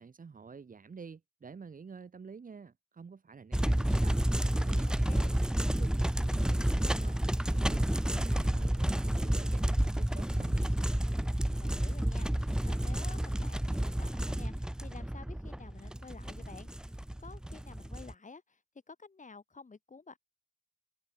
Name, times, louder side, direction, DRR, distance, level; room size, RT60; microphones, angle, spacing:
voice 1, 0.0-5.1 5.4-7.2 7.5-10.7, right 5 dB, 70° right, 1.1 m, -49 dB
sound 1, 3.5-18.1, right 1 dB, 5° right, 0.5 m, -30 dB
voice 2, 4.9-5.3 11.6-18.6 18.9-20.2, left 4 dB, 60° left, 2.2 m, -51 dB
wide cardioid pair, 90°, 14 cm